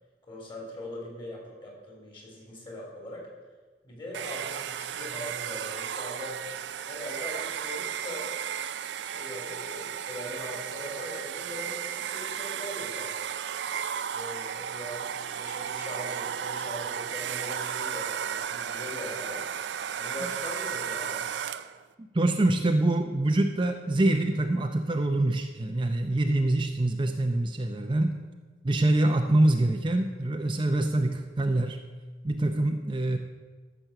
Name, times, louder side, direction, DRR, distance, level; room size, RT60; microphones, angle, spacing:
voice 1, 0.3-3.3 3.8-6.4 6.8-8.5 8.9-13.3 14.1-19.4 20.0-21.3, left 1 dB, 30° left, -1 dB, 3.3 m, -40 dB
Domestic sounds home sounds, 4.1-21.8, right 8 dB, 75° right, 0.4 m, -34 dB
voice 2, 22.1-28.2 28.6-31.8 32.2-33.2, right 1 dB, 25° right, 5 dB, 0.6 m, -25 dB
13.5 x 6.1 x 6.7 m, 1.4 s
head